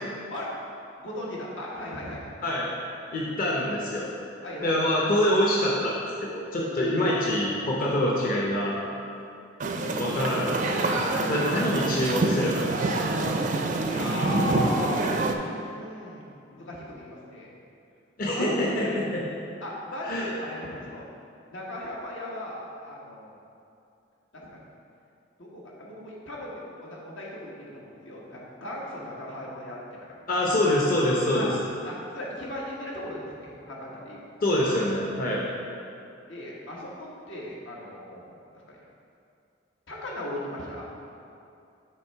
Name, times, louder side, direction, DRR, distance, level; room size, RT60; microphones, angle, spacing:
voice 1, 1.0-2.3 4.4-4.8 10.7-11.3 13.9-15.0 15.5-17.5 18.3-18.5 18.8-19.0 19.6-21.1 21.5-23.4 24.3-24.6 25.4-30.1 31.3-31.5 31.8-34.3 36.2-38.3 38.5-38.8 39.9-40.9, left 1 dB, 85° left, -4 dB, 1.3 m, -37 dB
voice 2, 3.1-4.1 4.6-6.0 6.3-8.8 10.0-10.9 11.3-12.7 13.2-13.3 18.2-18.9 20.1-20.3 30.3-31.5 34.4-35.4, left 1 dB, 45° left, -4 dB, 0.7 m, -25 dB
sound 1, 9.6-15.4, right 2 dB, 40° right, 0.4 m, -26 dB
8.4 x 3.2 x 4.6 m, 2.6 s
head